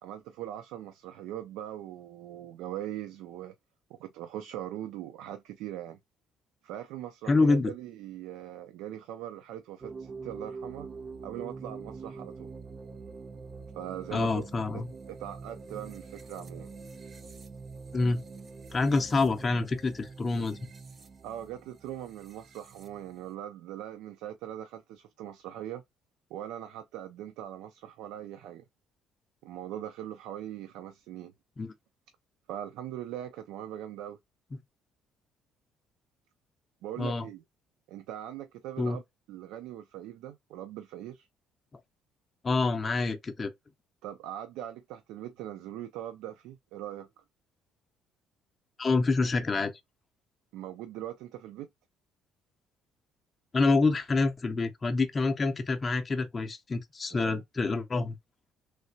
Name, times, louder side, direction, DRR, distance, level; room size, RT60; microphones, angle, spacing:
voice 1, 0.0-3.5 3.9-6.0 6.6-10.9 11.2-12.5 13.7-14.5 14.7-14.8 15.1-16.7 21.2-25.8 26.3-28.6 29.4-31.3 32.5-34.2 36.8-37.4 37.9-39.0 39.3-41.3 44.0-47.2 50.5-51.7 57.1-57.4, right 12 dB, 85° right, 0.4 m, -41 dB
voice 2, 7.3-7.7 14.1-14.9 17.9-18.2 18.7-20.6 31.6-31.7 37.0-37.3 38.8-39.0 42.4-43.5 48.8-49.7 53.5-58.2, left 3 dB, 25° left, 0.5 m, -27 dB
sound 1, 9.8-23.3, right 4 dB, 30° right, 0.5 m, -45 dB
3.3 x 2.8 x 2.7 m
cardioid pair, 120°, 0 cm